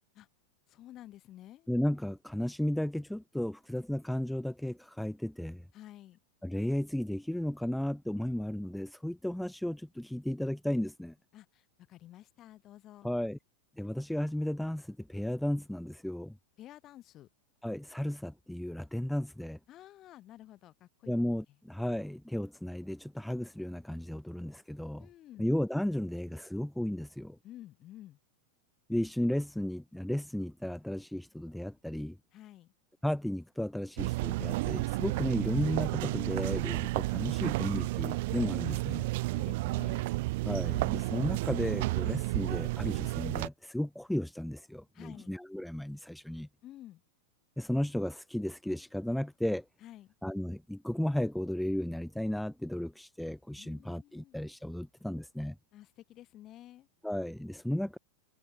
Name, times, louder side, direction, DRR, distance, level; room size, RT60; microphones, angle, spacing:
voice 1, 0.7-1.7 5.7-6.2 11.3-13.1 16.6-17.3 19.7-21.1 25.0-25.4 27.4-28.2 32.3-32.7 39.3-40.2 44.9-45.3 46.6-47.0 49.8-50.1 53.5-54.3 55.7-56.9, left 13 dB, 35° left, 5.1 m, -51 dB
voice 2, 1.7-5.7 6.4-11.1 13.0-13.4 13.8-16.4 17.6-19.6 21.1-25.1 25.4-27.4 28.9-32.2 33.0-39.0 40.4-46.5 47.6-49.7 50.2-55.6 57.0-58.0, left 1 dB, ahead, 0.9 m, -34 dB
sound 1, 34.0-43.5, right 21 dB, 50° right, 0.4 m, -32 dB
figure-of-eight pair, 90°, 0 cm